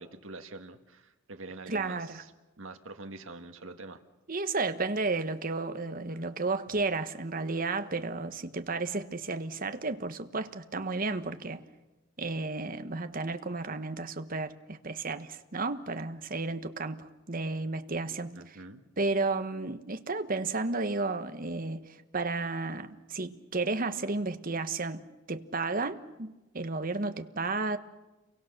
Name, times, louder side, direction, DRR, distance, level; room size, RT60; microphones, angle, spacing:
voice 1, 0.0-2.3 2.6-4.0 18.3-18.8, right 2 dB, 80° right, 1.7 m, -45 dB
voice 2, 1.7-2.2 4.3-11.6 12.2-18.5 19.0-27.8, right 3 dB, 45° right, 1.2 m, -33 dB
30.0 x 23.5 x 6.7 m
head